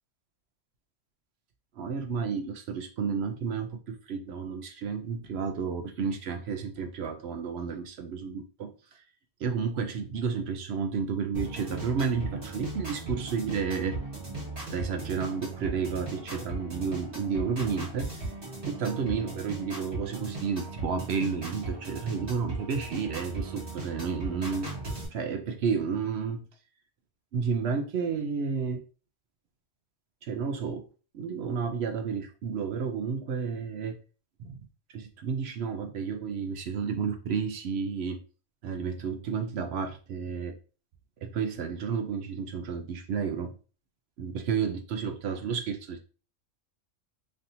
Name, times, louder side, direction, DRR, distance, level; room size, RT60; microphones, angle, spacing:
voice 1, 1.8-9.0 9.4-14.0 14.7-18.1 18.7-24.7 25.1-26.4 27.3-28.8 30.2-30.9 31.1-34.0 34.4-34.7 34.9-38.2 38.6-40.6 41.2-43.5 44.2-46.0, right 6 dB, 65° right, 5 dB, 0.7 m, -31 dB
sound 1, 11.3-25.1, right 2 dB, 45° right, 1.7 m, -38 dB
3.2 x 2.8 x 2.6 m, 0.36 s
omnidirectional pair, 1.3 m